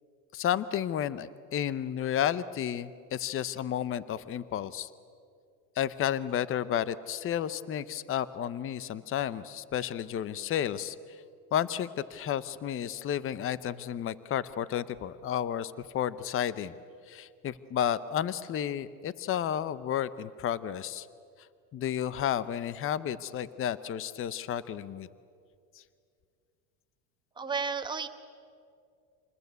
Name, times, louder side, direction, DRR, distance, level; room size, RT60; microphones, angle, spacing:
voice 1, 0.3-4.9 5.8-11.0 11.5-16.7 17.1-21.1 21.7-25.1, left 10 dB, 30° left, 17 dB, 0.8 m, -32 dB
voice 2, 27.4-28.1, right 5 dB, 10° right, 6 dB, 1.3 m, -32 dB
27.0 x 20.0 x 8.2 m, 2.3 s
supercardioid pair, 110°, 40 cm